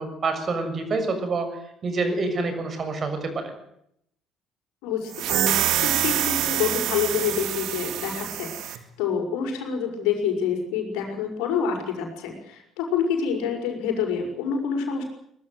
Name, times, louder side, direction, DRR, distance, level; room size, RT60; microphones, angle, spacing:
voice 1, 0.0-1.5 1.8-3.5, right 3 dB, 40° right, 7 dB, 6.6 m, -27 dB
voice 2, 4.8-15.0, left 7 dB, 65° left, 3 dB, 6.0 m, -27 dB
sound 1, 5.1-8.8, right 12 dB, 60° right, 2.2 m, -26 dB
23.5 x 20.5 x 8.0 m, 0.75 s
figure-of-eight pair, 50°, 0 cm